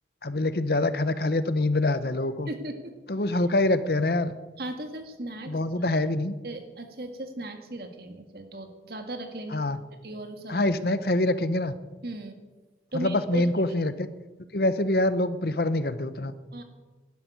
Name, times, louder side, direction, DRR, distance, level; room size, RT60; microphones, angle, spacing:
voice 1, 0.2-2.5 3.1-4.3 5.5-6.3 9.5-9.8 10.5-11.7 12.9-14.1 14.5-16.3, left 2 dB, 60° left, 13 dB, 0.9 m, -25 dB
voice 2, 2.5-2.9 4.6-5.6 5.9-6.0 6.4-9.6 10.0-10.6 12.0-12.4 12.9-13.5 16.5-16.6, right 1 dB, 60° right, 6 dB, 1.9 m, -37 dB
12.0 x 11.0 x 9.2 m, 1.2 s
head